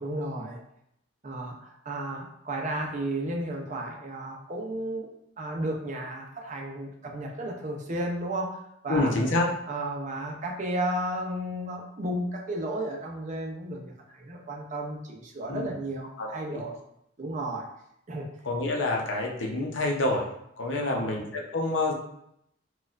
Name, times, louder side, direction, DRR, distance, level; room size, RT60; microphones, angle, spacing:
voice 1, 0.0-0.6 1.2-5.1 5.4-8.6 8.8-9.1 9.7-16.7 17.2-17.7 18.1-18.3 20.8-21.2, right 1 dB, 40° right, 1 dB, 0.5 m, -33 dB
voice 2, 8.9-9.5 15.5-15.7 16.2-16.6 18.4-20.3 20.6-21.9, left 2 dB, 75° left, 0 dB, 0.6 m, -27 dB
4.2 x 2.3 x 2.4 m, 0.75 s
head